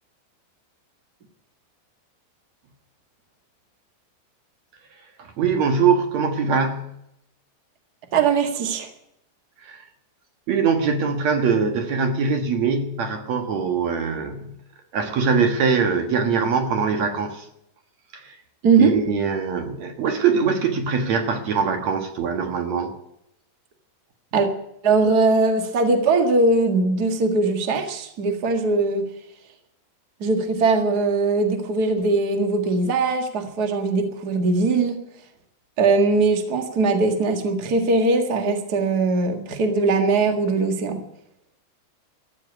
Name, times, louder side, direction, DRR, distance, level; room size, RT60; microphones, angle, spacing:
voice 1, 5.4-6.9 9.6-9.8 10.5-14.5 14.9-17.4 18.2-18.3 18.8-22.9, right 5 dB, 55° right, 6 dB, 2.0 m, -22 dB
voice 2, 8.1-8.9 18.6-18.9 24.3-24.5 24.8-29.0 30.2-35.0 35.8-41.0, right 3 dB, 75° right, 5 dB, 0.8 m, -20 dB
14.5 x 9.1 x 9.6 m, 0.78 s
omnidirectional pair, 5.0 m